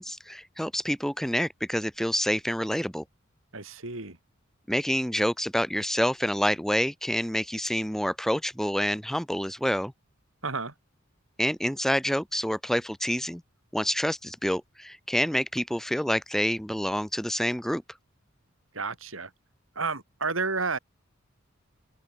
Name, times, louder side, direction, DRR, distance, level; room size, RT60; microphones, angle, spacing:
voice 1, 0.0-3.0 4.7-9.9 11.4-13.4 13.7-17.8, equal, ahead, 1.9 m, -27 dB
voice 2, 3.5-4.2 10.4-10.7 18.7-19.3 19.8-20.8, right 4 dB, 85° right, 5.2 m, -31 dB
open air
head